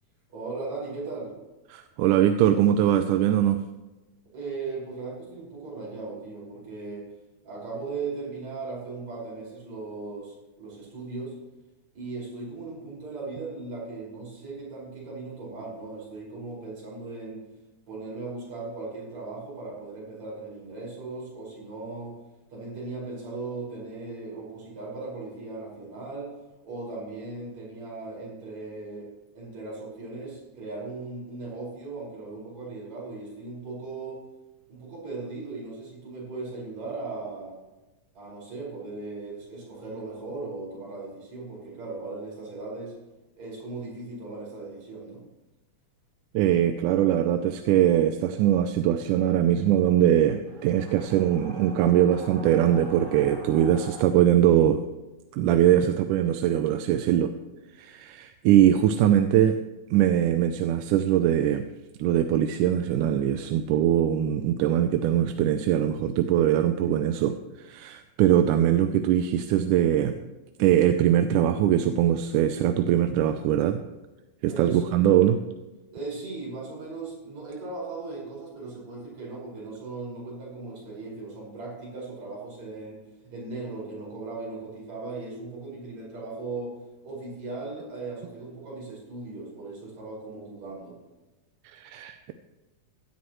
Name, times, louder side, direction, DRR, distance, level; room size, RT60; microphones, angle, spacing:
voice 1, 0.3-1.3 4.3-7.1 7.4-11.4 11.9-17.4 17.9-22.2 22.5-26.3 26.6-34.2 34.7-37.6 38.1-43.0 43.3-45.2 74.4-74.8 75.9-86.7 87.0-91.0, right 3 dB, 55° right, -5 dB, 6.6 m, -38 dB
voice 2, 1.7-3.6 46.3-54.8 55.3-57.4 57.7-59.6 59.9-61.7 62.0-70.2 70.6-73.8 74.4-75.4 91.6-92.3, right 11 dB, 80° right, 8 dB, 2.0 m, -22 dB
sound 1, 50.5-54.0, equal, 30° right, 1.9 m, -43 dB
16.0 x 12.5 x 3.1 m, 1.1 s
omnidirectional pair, 3.8 m